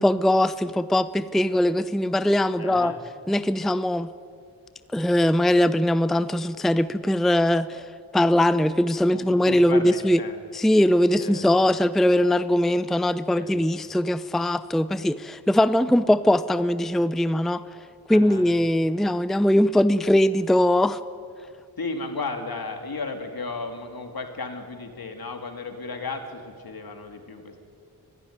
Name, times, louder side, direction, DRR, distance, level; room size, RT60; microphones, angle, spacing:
voice 1, 0.0-2.9 3.3-4.1 4.9-7.8 8.1-10.2 10.5-17.6 18.1-21.0, left 1 dB, ahead, 14 dB, 0.6 m, -21 dB
voice 2, 2.6-3.0 9.1-10.4 11.2-11.4 13.3-13.6 18.1-18.4 21.8-27.6, left 3 dB, 70° left, 4 dB, 3.0 m, -34 dB
25.0 x 15.5 x 9.8 m, 2.3 s
wide cardioid pair, 85°, 38 cm